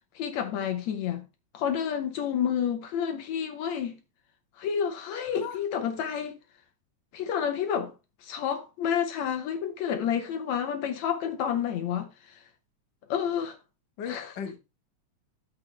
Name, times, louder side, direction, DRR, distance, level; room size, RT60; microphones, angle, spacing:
voice 1, 0.2-1.2 1.5-4.0 4.6-6.3 7.1-7.9 8.2-12.1 13.1-13.6 14.1-14.3, left 8 dB, 75° left, 2.2 m, -29 dB
voice 2, 5.3-5.6 14.0-14.6, left 7 dB, 45° left, 1.7 m, -37 dB
11.0 x 7.2 x 3.3 m
omnidirectional pair, 3.3 m